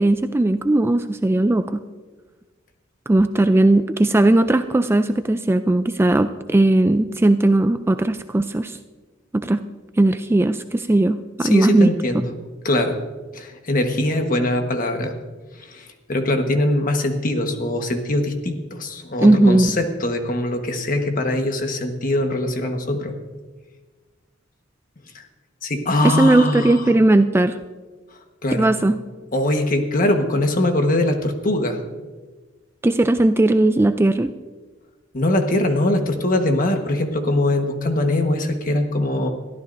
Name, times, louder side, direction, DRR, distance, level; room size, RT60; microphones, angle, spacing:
voice 1, 0.0-1.8 3.1-8.8 9.3-9.6 10.0-11.9 19.2-19.7 26.0-27.6 28.5-29.0 32.8-34.3, right 2 dB, 10° right, 9 dB, 0.3 m, -17 dB
voice 2, 11.4-12.2 12.6-13.0 13.3-15.1 15.6-23.1 25.1-25.3 25.6-26.9 28.4-28.7 29.3-31.8 35.1-39.3, left 1 dB, 45° left, 5 dB, 1.3 m, -22 dB
22.5 x 14.0 x 2.6 m, 1.3 s
head